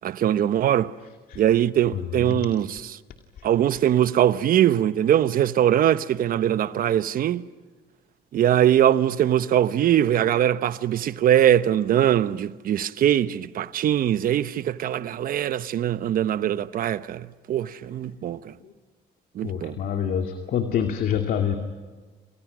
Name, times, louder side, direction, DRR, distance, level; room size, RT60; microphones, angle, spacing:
voice 1, 0.0-0.9 1.4-2.8 3.4-7.4 8.3-18.5 19.3-19.7, right 11 dB, 60° right, 1.1 m, -22 dB
voice 2, 1.8-2.6 3.4-3.5 3.8-3.9 18.6-18.7 19.4-21.6, left 8 dB, 60° left, 2.4 m, -27 dB
29.5 x 29.0 x 6.3 m
cardioid pair, 110°, 17 cm